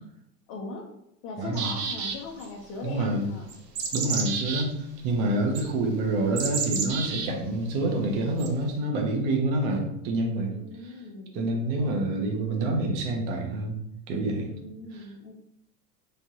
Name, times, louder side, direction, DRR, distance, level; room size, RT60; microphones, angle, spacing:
voice 1, 0.5-0.9 1.2-3.5 10.4-11.4 14.4-15.4, left 3 dB, 40° left, -2 dB, 0.8 m, -39 dB
voice 2, 1.4-1.7 2.8-3.3 3.9-4.8 5.0-10.5 11.3-13.8 14.1-14.5 14.9-15.1, right 2 dB, 50° right, 1 dB, 1.0 m, -27 dB
sound 1, 1.5-2.5 3.5-4.7 5.6-5.7 6.4-7.3 8.4-8.5, right 5 dB, 80° right, 0.8 m, -30 dB
3.5 x 3.2 x 2.8 m, 0.79 s
hypercardioid pair, 90°, 48 cm